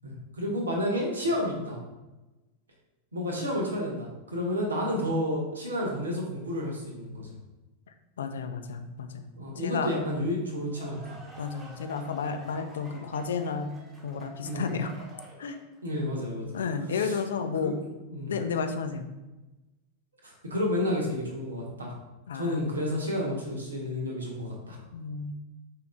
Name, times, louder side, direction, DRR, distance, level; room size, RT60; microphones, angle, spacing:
voice 1, 0.0-1.8 3.1-7.3 9.4-11.2 14.4-14.7 15.8-16.5 16.9-17.2 17.6-17.7 18.1-18.3 20.2-22.0 22.3-24.8, left 1 dB, 75° right, -1 dB, 1.1 m, -31 dB
voice 2, 8.2-9.9 11.4-13.7 14.0-14.9 15.4-15.6 16.5-17.8 18.3-19.1 22.3-22.6 24.9-25.3, left 5 dB, 65° left, 7 dB, 0.4 m, -32 dB
sound 1, 10.6-15.8, equal, 15° right, 1.0 m, -49 dB
4.5 x 2.9 x 3.6 m, 1.1 s
figure-of-eight pair, 90°, 0 cm